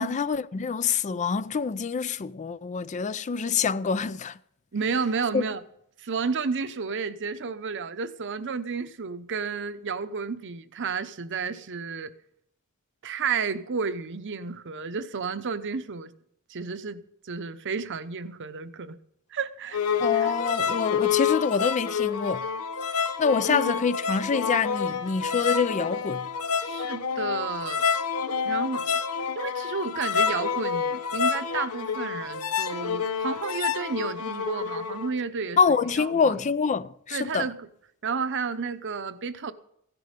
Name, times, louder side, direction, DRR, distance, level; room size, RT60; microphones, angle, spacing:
voice 1, 0.0-4.4 5.3-5.4 20.0-22.4 23.2-26.2 35.6-37.5, left 5 dB, 35° left, 0.4 m, -26 dB
voice 2, 4.7-5.6 6.0-12.1 13.0-16.1 16.5-19.0 19.3-19.8 20.1-20.3 23.4-23.7 26.6-27.9 28.4-29.0 29.3-35.6 36.0-36.4 37.1-37.7 38.0-39.5, right 5 dB, 55° right, 0.8 m, -31 dB
sound 1, 19.7-35.1, left 6 dB, 85° left, 0.9 m, -28 dB
15.5 x 10.5 x 5.2 m
head